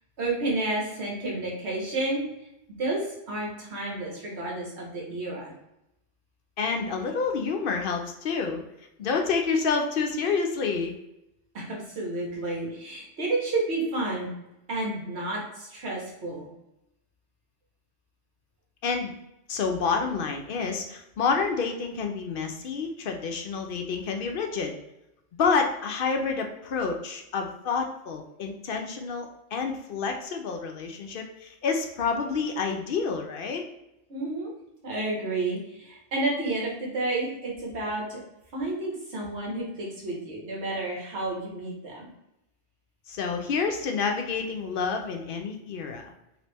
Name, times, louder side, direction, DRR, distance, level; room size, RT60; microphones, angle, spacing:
voice 1, 0.2-2.2 2.8-5.5 11.5-14.3 14.7-16.5 34.1-34.5 34.8-38.2 38.5-42.1, right 2 dB, 65° right, -3 dB, 1.4 m, -31 dB
voice 2, 6.6-8.6 9.0-10.9 18.8-19.1 19.5-24.8 25.4-33.6 43.1-46.1, left 5 dB, 60° left, 3 dB, 0.6 m, -28 dB
3.0 x 2.9 x 3.3 m, 0.86 s
omnidirectional pair, 1.2 m